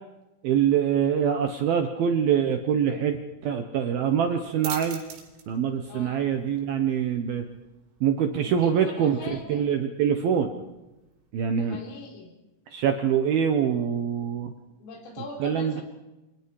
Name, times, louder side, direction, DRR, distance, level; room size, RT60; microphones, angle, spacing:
voice 1, 0.4-5.0 5.5-7.5 8.0-9.2 9.5-10.5 11.3-11.8 12.7-14.5 15.4-15.8, right 8 dB, 70° right, 6 dB, 2.3 m, -24 dB
sound 1, 4.0-11.3, right 7 dB, 90° right, 6.4 m, -46 dB
voice 2, 5.9-6.3 8.4-9.7 11.6-12.3 14.8-15.8, left 3 dB, 85° left, 2 dB, 6.7 m, -41 dB
30.0 x 25.5 x 4.9 m, 1.0 s
omnidirectional pair, 5.9 m